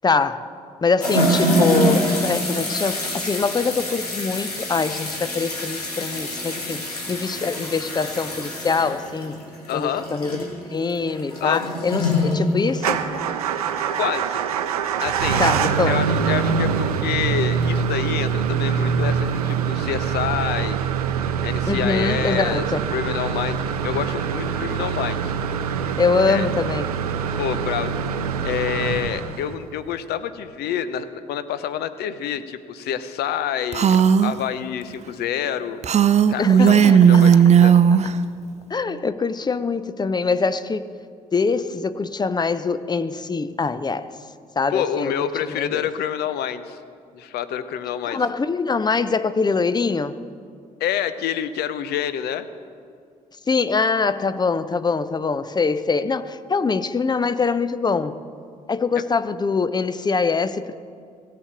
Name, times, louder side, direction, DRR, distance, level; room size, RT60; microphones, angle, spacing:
voice 1, 0.0-0.5 0.8-9.4 9.7-13.0 15.4-16.0 21.7-22.8 26.0-26.9 36.4-37.4 38.7-40.9 41.3-44.1 44.6-45.9 48.1-50.1 53.5-58.2 58.7-60.8, left 4 dB, 20° left, 14 dB, 0.7 m, -23 dB
sound 1, 1.0-13.4 13.7-13.8 15.8-15.9 17.6-17.7 19.3-19.4 20.2-20.3, left 1 dB, 85° left, 1.7 m, -25 dB
voice 2, 9.7-10.1 11.4-11.7 13.9-14.4 15.0-15.5 15.9-20.8 21.4-22.7 22.9-25.3 25.7-25.8 26.3-26.4 27.4-27.9 28.4-35.9 36.3-37.7 44.7-46.8 47.1-48.2 50.8-52.5, left 9 dB, 60° left, 13 dB, 0.8 m, -27 dB
Motor vehicle (road) / Engine starting / Idling, 12.8-29.7, right 7 dB, 80° right, 0.6 m, -24 dB
Female speech woman speaking, 33.7-34.4 35.8-38.1, right 8 dB, 35° right, 0.6 m, -14 dB
17.5 x 6.7 x 7.3 m, 2.2 s
figure-of-eight pair, 45°, 19 cm